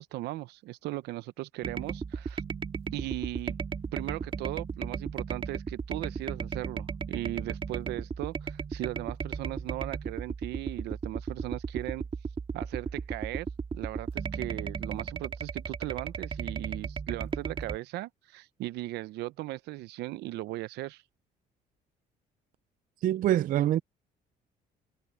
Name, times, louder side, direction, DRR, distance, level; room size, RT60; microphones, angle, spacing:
voice 1, 0.0-2.4 2.9-3.6 3.9-12.0 12.5-13.5 13.7-21.0, right 17 dB, 80° right, 0.8 m, -37 dB
sound 1, 1.6-17.8, right 5 dB, 30° right, 1.9 m, -36 dB
voice 2, 23.0-23.8, right 12 dB, 55° right, 0.5 m, -25 dB
cardioid pair, 110°, 17 cm